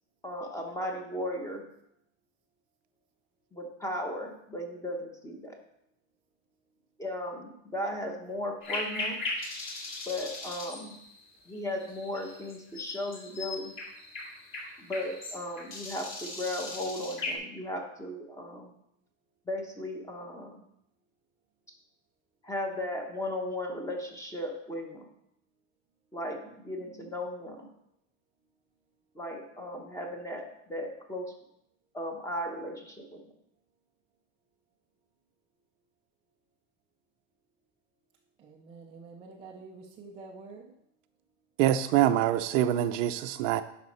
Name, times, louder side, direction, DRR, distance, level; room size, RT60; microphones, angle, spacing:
voice 1, 0.2-1.7 3.5-5.6 7.0-9.2 10.1-11.0 11.4-13.7 14.8-18.7 19.5-20.6 22.4-25.1 26.1-27.7 29.1-31.3 31.9-33.2, left 1 dB, 10° left, 2 dB, 1.0 m, -36 dB
sound 1, 8.6-17.4, left 2 dB, 30° left, 2.7 m, -38 dB
voice 2, 38.4-40.7, right 4 dB, 15° right, -2 dB, 0.5 m, -47 dB
voice 3, 41.6-43.6, right 12 dB, 65° right, 10 dB, 0.7 m, -25 dB
10.5 x 5.9 x 4.2 m, 0.78 s
supercardioid pair, 160°, 39 cm